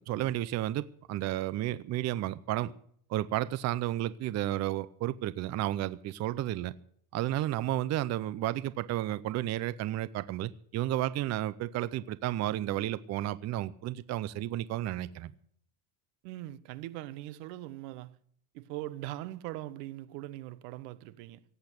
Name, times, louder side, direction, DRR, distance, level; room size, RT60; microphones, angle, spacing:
voice 1, 0.1-2.7 3.1-6.7 7.1-15.3, right 14 dB, 35° right, 0.6 m, -32 dB
voice 2, 16.2-18.2 18.5-21.4, right 15 dB, 80° right, 1.2 m, -41 dB
17.5 x 8.2 x 8.0 m
cardioid pair, 140°, 48 cm